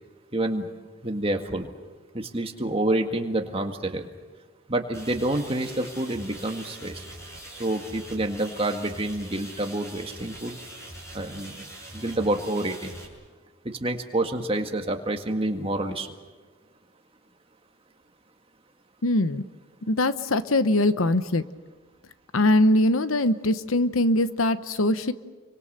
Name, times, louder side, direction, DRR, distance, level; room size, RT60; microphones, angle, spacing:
voice 1, 0.3-0.7 1.0-1.7 2.1-4.1 4.7-7.0 7.6-10.6 11.1-11.7 11.9-12.9 13.6-16.1, right 1 dB, 25° right, 4 dB, 1.9 m, -28 dB
sound 1, 4.9-13.1, right 1 dB, 15° left, 5.9 m, -43 dB
voice 2, 19.0-19.4 19.9-21.4 22.3-25.1, left 1 dB, 85° left, 13 dB, 1.0 m, -22 dB
30.0 x 24.5 x 6.7 m, 1.4 s
head